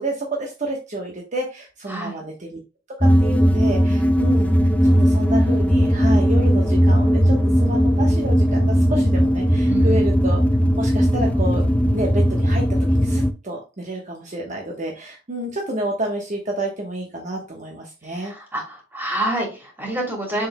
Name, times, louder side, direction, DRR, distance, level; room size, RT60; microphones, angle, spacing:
voice 1, 0.0-2.6 3.0-4.6 4.8-10.4 10.8-11.6 11.9-18.3, right 1 dB, 40° right, 0 dB, 1.1 m, -29 dB
voice 2, 1.9-2.2 9.7-10.1 18.1-20.5, right 1 dB, 10° right, -1 dB, 3.0 m, -28 dB
sound 1, 3.0-13.3, equal, 10° left, 0.5 m, -17 dB
7.0 x 6.4 x 2.2 m, 0.30 s
head